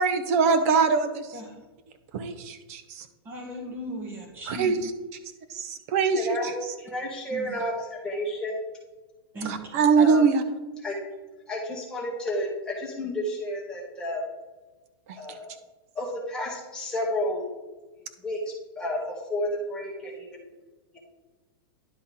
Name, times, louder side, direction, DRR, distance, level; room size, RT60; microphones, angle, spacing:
voice 1, 0.0-1.3 2.1-3.0 4.5-4.8 5.5-6.2 9.4-10.4, right 5 dB, 40° right, 9 dB, 0.7 m, -22 dB
voice 2, 3.2-4.7 7.3-7.6 9.3-9.6, equal, 15° right, -1 dB, 1.4 m, -37 dB
voice 3, 6.1-8.6 10.0-10.2 10.8-11.0 11.5-14.2 15.2-15.5 15.9-17.5 18.2-20.5 20.9-21.0, left 1 dB, 5° left, -4 dB, 1.5 m, -31 dB
11.0 x 4.2 x 3.8 m, 1.2 s
supercardioid pair, 170°, 13 cm